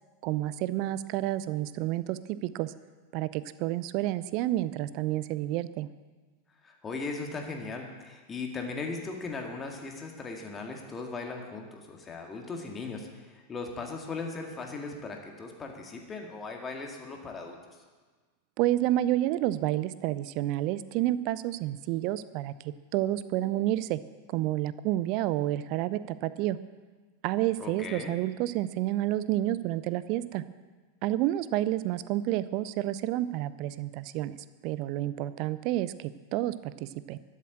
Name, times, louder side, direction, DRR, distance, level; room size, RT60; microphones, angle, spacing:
voice 1, 0.2-2.7 3.1-5.9 18.6-24.0 24.3-26.6 27.2-30.4 31.0-37.2, right 14 dB, 45° right, 16 dB, 0.5 m, -30 dB
voice 2, 6.6-17.6 27.6-28.1, left 3 dB, 20° left, 2 dB, 1.9 m, -38 dB
13.0 x 7.4 x 8.4 m, 1.4 s
figure-of-eight pair, 90°, 0 cm